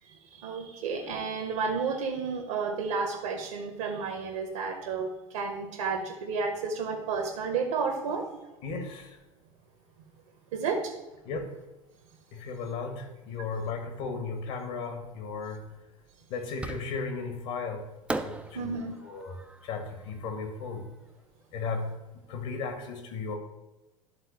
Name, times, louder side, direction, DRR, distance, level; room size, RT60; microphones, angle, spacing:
voice 1, 0.1-5.1 5.3-8.3 10.5-10.9 18.5-19.0, right 5 dB, 60° right, 3 dB, 1.0 m, -31 dB
voice 2, 8.6-9.2 11.2-11.5 12.3-15.7 16.3-17.8 18.2-19.4 19.6-20.9 21.5-21.9 22.3-23.4, left 4 dB, 55° left, 5 dB, 1.5 m, -35 dB
Fireworks, 16.6-17.3 18.1-21.2, right 2 dB, 5° right, 0.4 m, -39 dB
11.5 x 3.9 x 4.1 m, 1.0 s
figure-of-eight pair, 75°, 18 cm